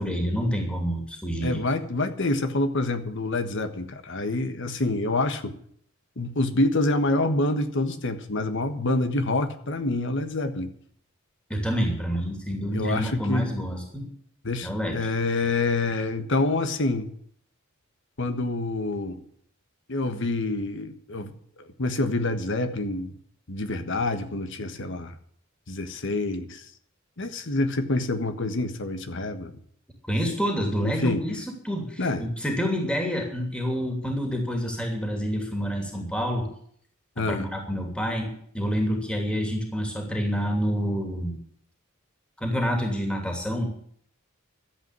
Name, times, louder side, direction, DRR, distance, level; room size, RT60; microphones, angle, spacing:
voice 1, 0.0-1.6 11.5-14.1 14.6-15.0 30.1-36.5 37.2-41.4 42.4-43.7, equal, 5° left, 2 dB, 2.9 m, -28 dB
voice 2, 1.4-5.5 6.2-10.7 12.7-13.5 14.4-17.1 18.2-19.2 19.9-21.3 21.8-23.1 23.5-25.1 25.7-26.6 27.2-29.5 30.8-31.2 32.0-32.2 37.2-37.5, left 2 dB, 60° left, 9 dB, 1.4 m, -27 dB
12.5 x 8.2 x 9.8 m, 0.63 s
head